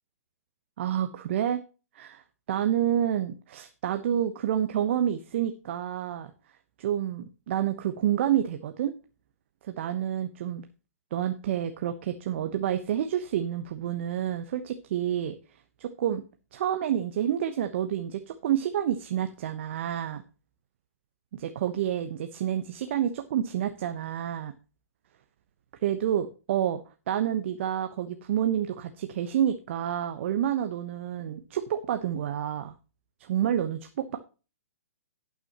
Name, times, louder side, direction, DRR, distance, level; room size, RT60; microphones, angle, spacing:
voice 1, 0.8-1.6 1.9-2.2 2.5-6.3 6.8-8.9 9.6-10.7 11.1-15.4 15.8-16.2 16.5-20.2 21.3-24.5 25.8-32.7 33.2-34.2, right 10 dB, 50° right, 7 dB, 1.0 m, -29 dB
18.0 x 6.2 x 3.0 m, 0.33 s
figure-of-eight pair, 120°, 8 cm